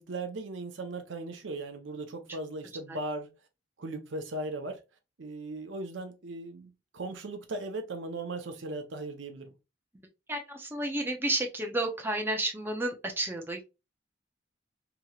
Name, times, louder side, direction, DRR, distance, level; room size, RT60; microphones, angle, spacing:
voice 1, 0.0-3.3 3.8-4.8 5.2-9.5, right 2 dB, 75° right, 0.6 m, -38 dB
voice 2, 10.3-13.6, right 1 dB, 10° right, 0.5 m, -31 dB
2.9 x 2.8 x 2.3 m
head